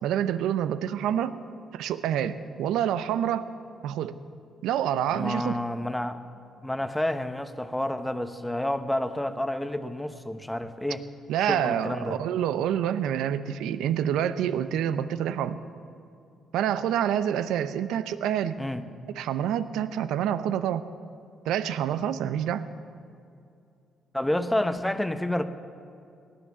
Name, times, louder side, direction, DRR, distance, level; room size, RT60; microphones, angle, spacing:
voice 1, 0.0-1.4 1.7-3.5 3.8-4.2 4.6-5.6 11.3-15.6 16.5-18.5 19.1-20.9 21.4-22.7, right 10 dB, 90° right, 13 dB, 0.6 m, -27 dB
voice 2, 5.1-6.2 6.6-11.0 11.4-12.2 18.6-18.8 24.1-25.4, left 1 dB, 5° left, 10 dB, 0.9 m, -29 dB
18.0 x 10.0 x 7.0 m, 2.5 s
cardioid pair, 90°, 0 cm